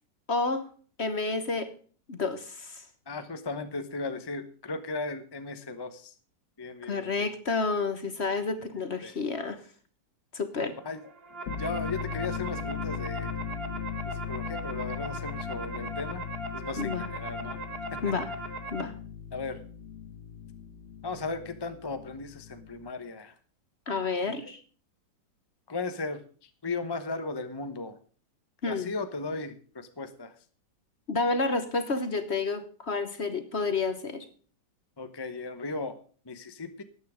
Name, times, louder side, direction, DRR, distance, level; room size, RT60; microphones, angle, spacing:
voice 1, 0.3-0.6 1.0-1.7 2.1-2.8 6.8-9.6 10.3-10.7 16.8-17.1 18.0-18.3 18.7-18.9 23.9-24.6 28.6-28.9 31.1-34.2, left 3 dB, 40° left, 10 dB, 1.2 m, -30 dB
voice 2, 3.1-6.1 6.6-7.3 9.0-9.1 10.8-11.0 11.6-13.3 14.0-16.2 16.5-17.6 17.9-18.0 19.3-19.6 21.0-23.3 24.3-24.4 25.7-28.0 28.6-30.3 35.0-36.0 36.3-36.8, left 3 dB, 20° left, 9 dB, 0.8 m, -36 dB
sound 1, 11.0-18.8, right 2 dB, 35° right, 1.6 m, -39 dB
sound 2, 11.4-22.9, left 8 dB, 85° left, 2.0 m, -38 dB
13.5 x 9.5 x 5.0 m, 0.41 s
omnidirectional pair, 1.9 m